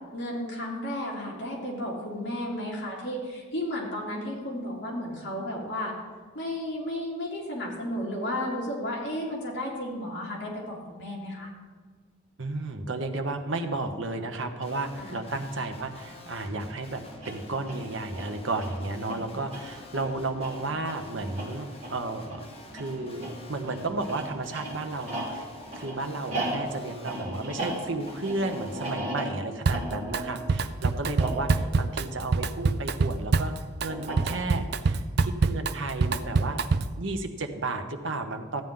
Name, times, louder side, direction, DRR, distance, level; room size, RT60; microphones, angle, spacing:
voice 1, 0.1-5.9 6.3-11.5 15.0-15.2 19.0-19.3 30.2-30.4, left 1 dB, 60° left, -4 dB, 3.0 m, -33 dB
voice 2, 12.4-22.4 22.7-25.5 25.7-33.5 33.8-36.6 37.0-38.6, right 2 dB, 75° right, 6 dB, 1.0 m, -33 dB
Guitar, 14.6-28.9, left 1 dB, 30° left, 1.1 m, -48 dB
sound 1, 17.1-32.9 33.9-34.7, right 1 dB, 35° right, 3.0 m, -37 dB
Drum kit, 29.7-30.2 30.5-37.0, right 4 dB, 55° right, 0.4 m, -26 dB
14.0 x 9.2 x 3.8 m, 1.5 s
head